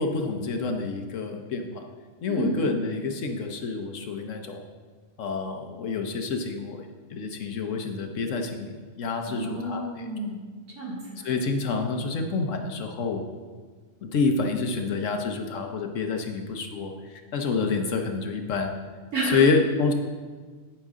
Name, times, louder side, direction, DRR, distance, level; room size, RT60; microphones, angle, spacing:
voice 1, 0.0-1.8 2.2-4.6 5.2-9.9 11.2-13.2 14.0-18.7 19.3-19.9, left 4 dB, 70° left, 4 dB, 1.1 m, -28 dB
voice 2, 2.3-2.7 9.2-10.4 10.7-11.3 19.1-19.5, right 1 dB, 65° right, -5 dB, 2.7 m, -30 dB
8.9 x 8.8 x 3.7 m, 1.5 s
omnidirectional pair, 1.4 m